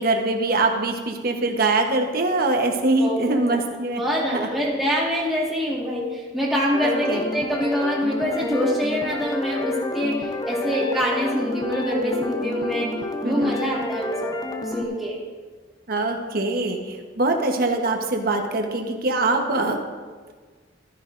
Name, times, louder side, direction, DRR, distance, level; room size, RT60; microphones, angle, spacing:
voice 1, 0.0-4.0 4.3-4.5 6.8-7.2 13.2-13.6 15.9-19.8, right 2 dB, 55° right, 3 dB, 1.1 m, -23 dB
voice 2, 3.0-3.6 4.0-12.9 13.2-14.4 14.7-15.2, equal, ahead, -6 dB, 1.7 m, -25 dB
sound 1, 6.7-14.9, left 2 dB, 20° left, 0.7 m, -30 dB
13.0 x 10.0 x 2.6 m, 1.5 s
head